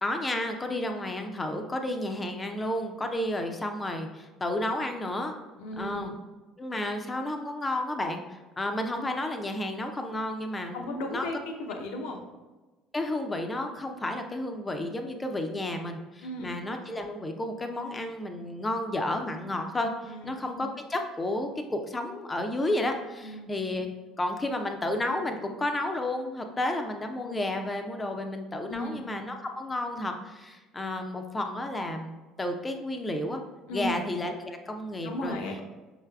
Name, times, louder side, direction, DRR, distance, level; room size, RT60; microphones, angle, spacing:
voice 1, 0.0-5.3 5.8-6.1 6.6-11.3 12.9-23.9 24.2-33.4 33.7-35.4, left 1 dB, 20° left, 5 dB, 0.5 m, -32 dB
voice 2, 5.6-6.1 10.7-12.2 16.2-16.5 20.0-20.3 23.2-23.5 28.7-29.0 33.7-34.0 35.0-35.6, left 1 dB, 65° left, 3 dB, 0.6 m, -35 dB
5.5 x 3.3 x 2.3 m, 1.2 s
figure-of-eight pair, 60°, 0 cm